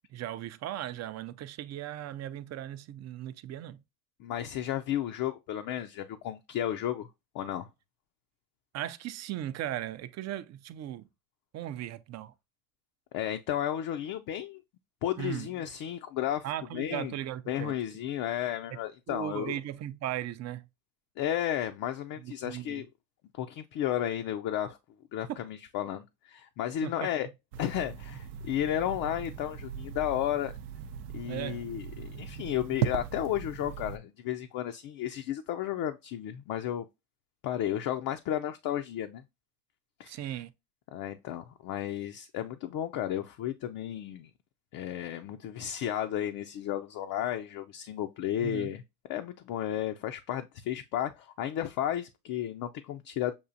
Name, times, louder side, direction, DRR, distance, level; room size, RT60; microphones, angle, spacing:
voice 1, 0.1-3.8 8.7-11.0 11.5-12.3 15.2-15.5 16.4-17.8 19.1-20.6 22.2-22.8 25.3-25.4 26.8-27.1 31.2-31.6 40.1-40.5 48.4-48.7, right 12 dB, 40° right, 0.4 m, -37 dB
voice 2, 4.2-7.1 7.3-7.7 13.1-14.6 15.0-16.5 16.7-17.1 17.5-19.5 21.2-22.9 23.3-24.8 25.1-27.3 27.6-30.5 31.1-36.8 37.4-39.2 40.0-40.2 40.9-44.3 44.7-48.8 49.1-53.3, left 11 dB, 50° left, 0.5 m, -33 dB
sound 1, 27.5-34.0, right 9 dB, 90° right, 0.6 m, -38 dB
7.0 x 2.4 x 2.6 m
supercardioid pair, 85°, 42 cm